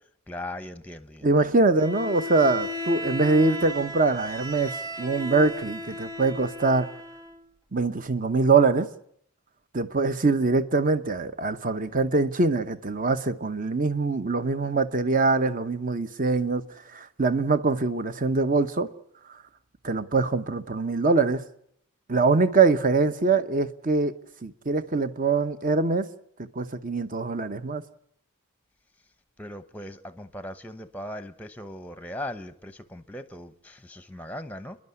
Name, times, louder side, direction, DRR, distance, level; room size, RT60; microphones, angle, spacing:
voice 1, 0.3-1.6 29.4-34.8, left 1 dB, 5° left, 0.9 m, -39 dB
voice 2, 1.2-6.9 7.7-8.9 9.7-16.6 16.9-18.9 19.8-21.4 22.1-24.1 24.4-26.1 26.5-27.8, right 3 dB, 40° right, 1.0 m, -23 dB
Bowed string instrument, 1.8-7.4, left 1 dB, 15° right, 1.7 m, -35 dB
29.5 x 11.0 x 9.6 m
head